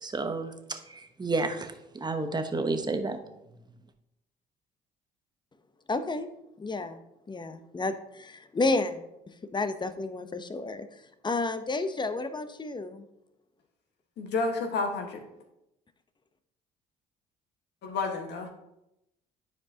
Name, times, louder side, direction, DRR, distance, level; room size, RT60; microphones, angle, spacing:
voice 1, 0.0-3.2, right 3 dB, 20° right, 7 dB, 1.0 m, -31 dB
voice 2, 5.9-6.3 6.6-7.0 7.3-9.0 9.5-10.9 11.2-13.0, left 3 dB, 25° left, 10 dB, 0.8 m, -31 dB
voice 3, 14.2-15.2 17.8-18.5, left 3 dB, 65° left, 3 dB, 1.5 m, -30 dB
9.9 x 4.7 x 2.8 m, 0.85 s
supercardioid pair, 60°, 19 cm